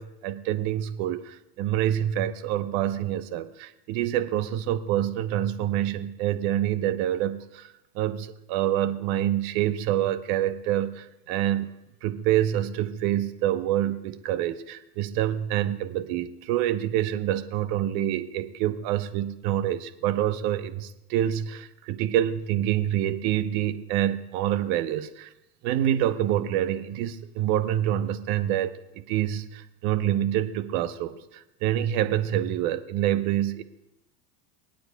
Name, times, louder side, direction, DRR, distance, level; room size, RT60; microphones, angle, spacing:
voice 1, 0.0-7.7 7.9-11.7 12.0-25.3 25.6-28.7 29.1-33.6, right 12 dB, 60° right, 10 dB, 1.0 m, -26 dB
24.5 x 9.1 x 2.3 m, 0.91 s
supercardioid pair, 105°, 47 cm